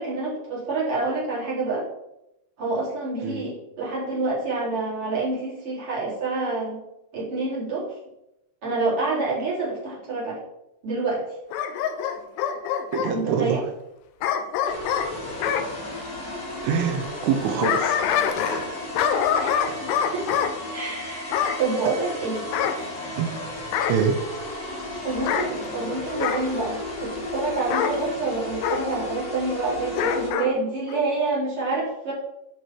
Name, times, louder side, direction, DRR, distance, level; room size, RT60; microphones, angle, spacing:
voice 1, 0.0-1.8 2.6-6.8 7.1-7.9 8.6-10.4 10.8-11.2 13.1-13.6 19.4-22.4 25.0-32.1, right 3 dB, 30° right, -7 dB, 4.8 m, -27 dB
Bark / Growling, 11.5-13.1 14.2-15.7 17.3-18.7 19.0-20.5 21.3-21.6 22.5-23.3 23.7-24.1 25.2-25.5 26.2-26.5 27.7-28.0 28.6-28.8 29.9-30.5 30.9-31.0, left 8 dB, 85° left, 3.3 m, -25 dB
voice 2, 12.9-13.6 16.6-18.0 18.3-18.8 19.5-19.8 23.2-23.3 23.9-24.2, right 7 dB, 85° right, 4 dB, 3.7 m, -25 dB
sound 1, 14.6-30.3, left 2 dB, 25° left, 2.2 m, -34 dB
11.0 x 7.8 x 4.8 m, 0.87 s
omnidirectional pair, 5.6 m